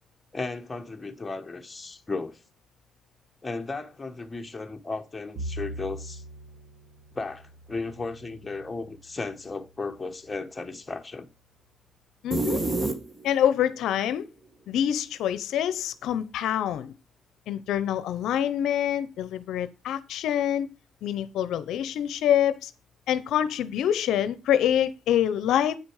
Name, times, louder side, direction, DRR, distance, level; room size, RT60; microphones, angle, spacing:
voice 1, 0.3-2.4 3.4-6.2 7.1-11.3, left 3 dB, 20° left, 1.1 m, -35 dB
Bowed string instrument, 5.4-9.7, right 1 dB, 80° right, 1.3 m, -41 dB
voice 2, 12.2-12.6 13.2-14.2 14.7-16.9 17.5-20.7 21.0-22.7 23.1-25.8, left 10 dB, 80° left, 0.6 m, -26 dB
sound 1, 12.3-13.5, right 2 dB, 25° right, 1.6 m, -27 dB
8.8 x 6.3 x 4.8 m
cardioid pair, 90°, 0 cm